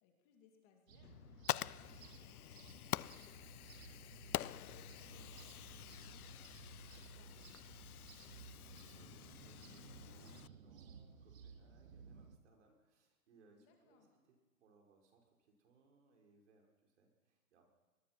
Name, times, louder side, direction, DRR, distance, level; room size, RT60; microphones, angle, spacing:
voice 1, 0.0-3.4 3.9-8.2 13.6-14.1, left 7 dB, 20° left, 2 dB, 2.5 m, -69 dB
sound 1, 0.9-12.4, right 6 dB, 65° right, 2.3 m, -57 dB
Fire, 1.0-10.5, left 12 dB, 85° left, 0.7 m, -46 dB
voice 2, 8.6-17.7, right 3 dB, 50° right, 2 dB, 5.4 m, -70 dB
24.5 x 21.0 x 6.0 m, 1.3 s
hypercardioid pair, 170°, 43 cm